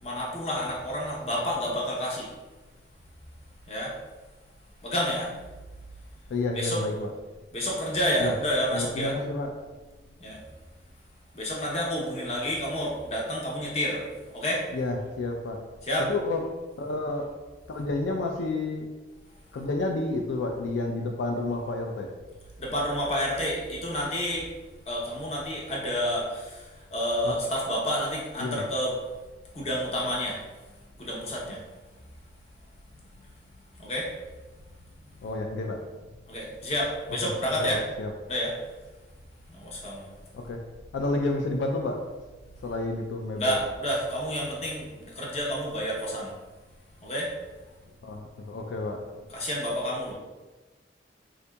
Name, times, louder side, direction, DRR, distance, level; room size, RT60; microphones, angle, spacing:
voice 1, 0.0-2.3 3.7-3.9 4.8-5.3 6.5-6.8 7.5-9.1 10.2-10.4 11.3-14.0 14.3-14.6 15.8-16.1 22.6-24.5 24.9-28.9 29.5-30.4 31.0-31.6 33.8-34.1 36.3-37.8 38.3-38.5 39.5-40.1 43.4-46.3 47.0-47.3 49.3-50.1, equal, 35° left, -3 dB, 0.7 m, -29 dB
voice 2, 6.3-7.1 8.2-8.3 8.7-9.5 14.7-15.6 16.1-16.4 16.8-17.3 17.7-18.9 19.5-22.1 27.2-27.4 28.4-28.6 35.2-35.8 37.2-37.3 37.6-38.1 40.3-40.6 40.9-42.0 42.6-43.6 48.0-49.0, left 2 dB, 75° left, 2 dB, 0.3 m, -30 dB
3.7 x 2.6 x 2.2 m, 1.2 s
head